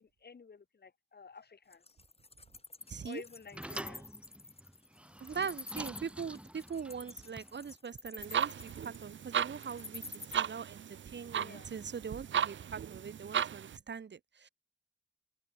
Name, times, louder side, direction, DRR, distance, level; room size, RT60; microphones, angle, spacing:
voice 1, 0.0-1.8 3.0-4.1 11.4-11.7, left 5 dB, 60° left, 4.9 m, -51 dB
Wild animals, 1.7-10.3, left 3 dB, 30° left, 5.5 m, -48 dB
sound 1, 2.8-7.8, right 1 dB, 5° right, 1.9 m, -47 dB
voice 2, 2.9-3.2 5.2-10.0 10.3-14.5, right 6 dB, 70° right, 2.2 m, -42 dB
sound 2, 8.2-13.8, right 9 dB, 85° right, 0.6 m, -36 dB
wide cardioid pair, 120°, 19 cm